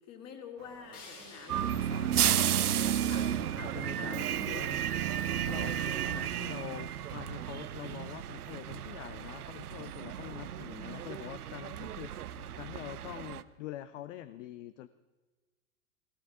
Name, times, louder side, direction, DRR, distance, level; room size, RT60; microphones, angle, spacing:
voice 1, 0.1-4.6, left 6 dB, 35° left, 3 dB, 3.1 m, -46 dB
Subway metro underground, 0.6-8.0, right 10 dB, 40° right, 0.9 m, -49 dB
sound 1, 0.9-3.9, left 4 dB, 70° left, 5.9 m, -55 dB
sound 2, 1.5-13.4, right 10 dB, 80° right, 0.8 m, -33 dB
voice 2, 3.5-4.8 5.5-14.9, left 13 dB, 55° left, 14 dB, 0.8 m, -45 dB
17.5 x 16.5 x 4.9 m, 1.3 s
hypercardioid pair, 100°, 44 cm